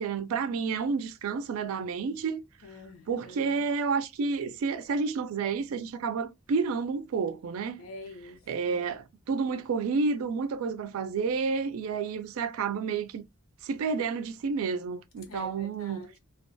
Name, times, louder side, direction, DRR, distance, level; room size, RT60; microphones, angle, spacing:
voice 1, 0.0-2.4 3.1-7.8 8.5-13.2 13.6-16.0, right 5 dB, 90° right, 0.3 m, -30 dB
voice 2, 2.6-3.5 7.8-8.4 8.7-8.8 15.3-16.2, left 2 dB, 90° left, 0.8 m, -45 dB
2.3 x 2.2 x 2.5 m
head